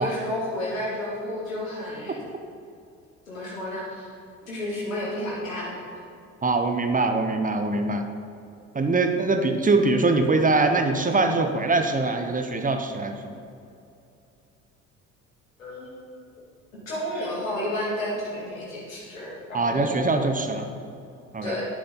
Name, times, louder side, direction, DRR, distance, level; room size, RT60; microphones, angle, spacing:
voice 1, 0.0-2.2 3.3-4.1 4.5-5.8 8.8-8.9 15.6-15.9 16.9-20.1 21.4-21.7, left 1 dB, 80° left, -6 dB, 2.8 m, -31 dB
voice 2, 6.4-8.0 8.7-13.4 19.5-20.7 21.3-21.5, right 3 dB, 20° right, 6 dB, 1.0 m, -23 dB
10.5 x 9.8 x 3.8 m, 2.6 s
figure-of-eight pair, 50°, 40 cm